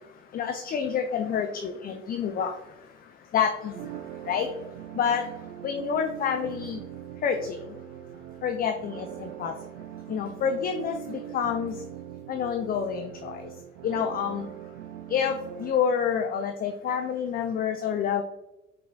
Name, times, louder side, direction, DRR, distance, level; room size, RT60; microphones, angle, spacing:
voice 1, 0.3-2.5 3.3-3.7 4.3-4.5 5.0-5.2 5.6-6.8 7.2-7.6 8.4-9.5 10.1-11.7 12.3-13.5 13.8-14.5 15.1-18.2, left 7 dB, 25° left, 5 dB, 0.3 m, -28 dB
sound 1, 3.7-15.7, right 11 dB, 55° right, 0.5 m, -41 dB
4.6 x 3.7 x 2.2 m, 0.98 s
figure-of-eight pair, 50°, 37 cm